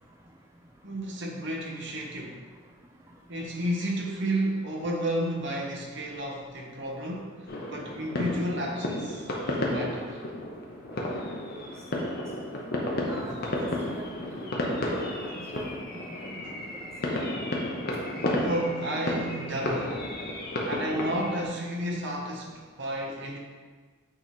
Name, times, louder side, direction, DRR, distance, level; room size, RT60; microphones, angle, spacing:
voice 1, 0.8-2.4 3.3-10.2 18.1-20.0 20.7-23.4, right 1 dB, 60° right, -1 dB, 1.2 m, -32 dB
sound 1, 7.5-21.4, left 1 dB, 45° left, 0.9 m, -32 dB
voice 2, 13.6-14.5 14.9-15.6 15.9-16.1 16.3-16.4 18.2-18.3, right 1 dB, 15° right, 0 dB, 0.3 m, -44 dB
8.8 x 3.3 x 4.3 m, 1.5 s
head